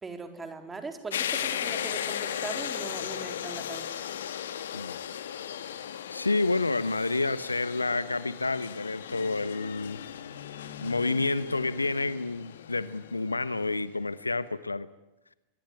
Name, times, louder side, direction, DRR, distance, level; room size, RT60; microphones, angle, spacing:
voice 1, 0.0-4.0, right 3 dB, 15° right, 6 dB, 3.9 m, -40 dB
sound 1, 1.1-13.8, left 9 dB, 60° left, 1.7 m, -37 dB
voice 2, 6.1-10.0 10.8-14.9, left 3 dB, 80° left, 17 dB, 1.0 m, -29 dB
23.0 x 22.0 x 9.9 m, 0.97 s
figure-of-eight pair, 90°, 0 cm